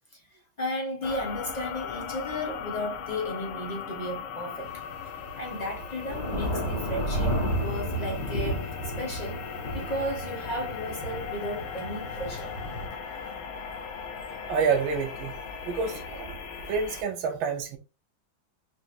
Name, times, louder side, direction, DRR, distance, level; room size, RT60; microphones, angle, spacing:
voice 1, 0.6-4.8 5.4-9.4 9.7-12.6 15.8-16.0, left 1 dB, 45° left, 0.5 m, -34 dB
sound 1, 1.0-17.0, left 6 dB, 80° left, 1.4 m, -38 dB
Thunder / Rain, 4.6-12.9, equal, 60° left, 2.5 m, -32 dB
voice 2, 14.5-15.4 15.7-16.4 16.7-17.8, right 5 dB, 80° right, 1.4 m, -28 dB
5.0 x 3.1 x 2.4 m
omnidirectional pair, 2.2 m